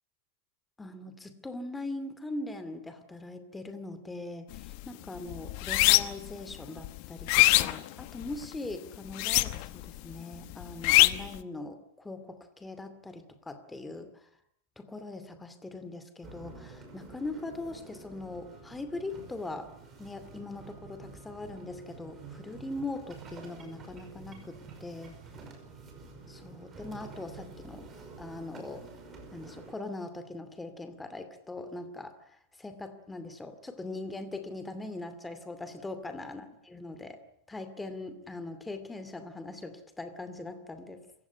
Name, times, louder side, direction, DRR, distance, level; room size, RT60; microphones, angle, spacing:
voice 1, 0.8-14.3 14.8-25.2 26.3-28.9 29.3-41.1, left 2 dB, 5° left, 10 dB, 2.4 m, -41 dB
sound 1, 4.5-4.8 5.2-6.3 6.8-8.5 9.1-9.9 10.1-11.4, left 20 dB, 45° left, 1.1 m, -23 dB
sound 2, 16.2-29.7, right 4 dB, 20° right, 5.5 m, -49 dB
27.0 x 16.0 x 9.8 m, 0.72 s
supercardioid pair, 155°, 0 cm